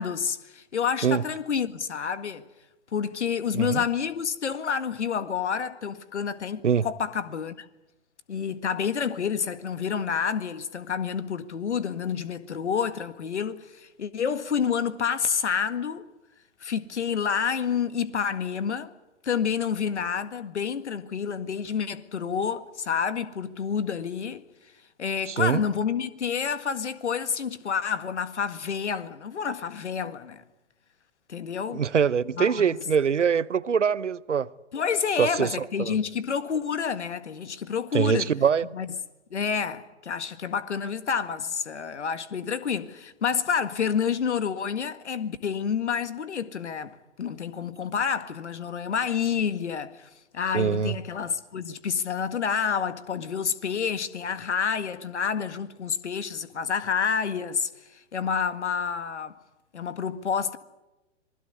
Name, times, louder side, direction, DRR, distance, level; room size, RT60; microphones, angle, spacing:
voice 1, 0.0-2.4 2.9-7.7 8.3-16.1 16.6-18.9 19.2-24.4 25.0-30.4 31.3-31.8 32.3-32.6 34.7-38.3 38.7-38.9 39.3-59.4 59.7-60.6, left 7 dB, 75° left, 1.9 m, -29 dB
voice 2, 25.3-25.6 31.7-34.5 35.2-35.9 37.9-38.6 50.5-51.0, right 7 dB, 85° right, 0.9 m, -24 dB
26.0 x 20.5 x 9.6 m
figure-of-eight pair, 115°, 35 cm